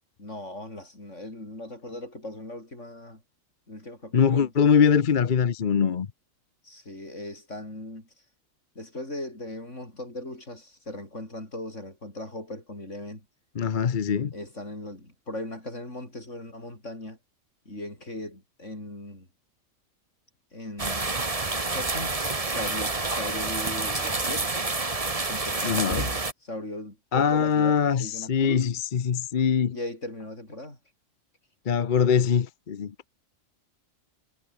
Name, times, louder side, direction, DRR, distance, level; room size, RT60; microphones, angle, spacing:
voice 1, 0.2-3.2 3.7-4.7 6.6-8.1 8.7-13.2 14.3-17.2 17.6-19.3 20.5-21.3 21.7-24.6 25.3-28.7 29.7-30.8, left 1 dB, 65° left, 8.5 m, -38 dB
voice 2, 4.1-6.1 13.6-14.3 25.6-26.1 27.1-29.8 31.7-32.9, left 7 dB, 45° left, 0.9 m, -23 dB
sound 1, 20.8-26.3, right 3 dB, 25° right, 1.7 m, -28 dB
omnidirectional pair, 1.4 m